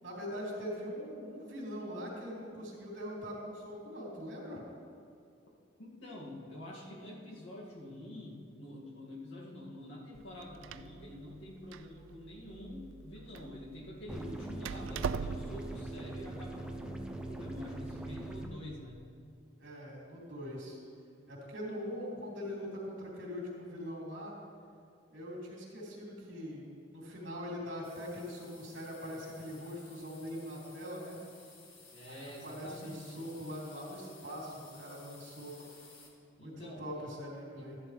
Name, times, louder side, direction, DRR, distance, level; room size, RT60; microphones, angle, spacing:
voice 1, 0.0-4.6 19.6-20.8 21.3-24.3 25.1-31.2 32.1-35.7 36.4-37.8, equal, 65° right, -3 dB, 3.1 m, -42 dB
voice 2, 5.8-19.1 31.9-33.3 36.4-37.1 37.6-37.7, left 1 dB, 70° left, -4 dB, 2.3 m, -47 dB
Door, 10.2-15.8, right 6 dB, 80° right, 0.3 m, -42 dB
sound 1, 14.1-18.5, right 2 dB, 5° right, 0.6 m, -42 dB
sound 2, 27.8-36.1, left 3 dB, 90° left, 1.8 m, -57 dB
13.5 x 11.0 x 3.3 m, 2.5 s
head